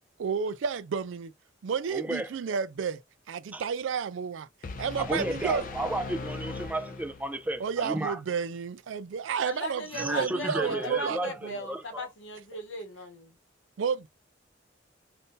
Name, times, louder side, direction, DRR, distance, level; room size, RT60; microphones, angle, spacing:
voice 1, 0.2-1.3 1.6-3.0 3.3-4.5 4.8-5.6 7.6-11.6 13.8-14.1, right 6 dB, 75° right, 0.4 m, -31 dB
voice 2, 1.9-2.3 3.5-3.6 5.0-8.2 9.9-12.1, right 1 dB, 10° right, 0.4 m, -33 dB
sound 1, 4.6-7.6, left 3 dB, 45° left, 0.5 m, -39 dB
voice 3, 9.4-13.3, left 1 dB, 75° left, 0.9 m, -38 dB
2.6 x 2.6 x 3.6 m
head